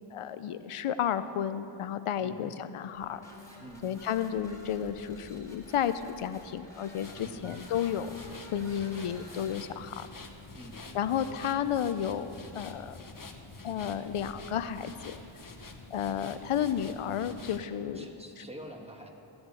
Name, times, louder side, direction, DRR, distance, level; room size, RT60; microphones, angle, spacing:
voice 1, 0.1-3.2 3.8-8.1 8.5-10.1 10.9-13.0 13.6-15.2 15.9-18.1, left 9 dB, 85° left, 12 dB, 0.6 m, -32 dB
sound 1, 2.9-9.9, equal, 5° left, 3.2 m, -51 dB
sound 2, 7.0-17.6, left 3 dB, 40° left, 1.2 m, -47 dB
voice 2, 7.2-7.6 10.5-10.8 17.9-19.1, equal, 10° right, 1 dB, 1.8 m, -46 dB
15.5 x 7.9 x 7.0 m, 2.9 s
cardioid pair, 40°, 50 cm